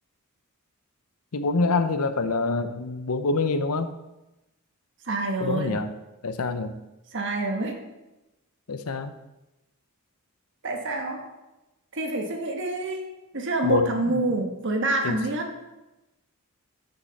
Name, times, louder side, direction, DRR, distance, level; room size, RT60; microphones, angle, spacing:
voice 1, 1.3-3.9 5.4-5.9 6.2-6.8 8.7-9.1 13.6-14.2 15.0-15.2, left 3 dB, 85° left, 10 dB, 0.7 m, -26 dB
voice 2, 5.0-5.8 7.1-7.8 10.6-11.2 11.9-15.5, right 2 dB, 55° right, 3 dB, 1.5 m, -27 dB
12.5 x 6.7 x 4.1 m, 1.0 s
head